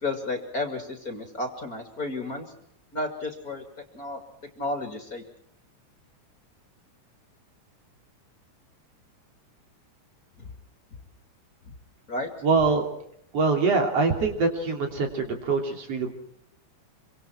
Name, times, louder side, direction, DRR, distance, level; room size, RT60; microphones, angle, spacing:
voice 1, 0.0-2.5 2.9-3.7 3.9-4.2 4.6-5.2 10.4-10.5 12.1-12.3, left 2 dB, 30° left, 4 dB, 2.6 m, -32 dB
voice 2, 12.4-12.9 13.3-16.1, right 4 dB, 55° right, 3 dB, 4.0 m, -24 dB
26.5 x 24.5 x 4.5 m, 0.71 s
omnidirectional pair, 3.3 m